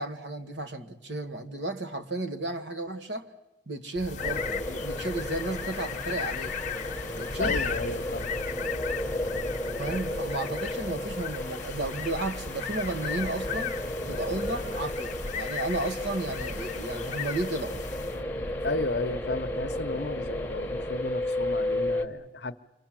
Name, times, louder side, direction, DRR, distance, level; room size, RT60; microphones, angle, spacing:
voice 1, 0.0-3.3 3.7-6.6 7.2-7.6 9.8-13.8 14.1-17.8, right 2 dB, 65° right, 1.6 m, -33 dB
sound 1, 3.9-18.3, left 6 dB, 40° left, 1.1 m, -37 dB
sound 2, 4.2-22.1, left 1 dB, 10° left, 1.3 m, -33 dB
voice 2, 7.4-8.4 18.6-22.6, left 3 dB, 60° left, 0.9 m, -33 dB
27.5 x 23.5 x 7.5 m
head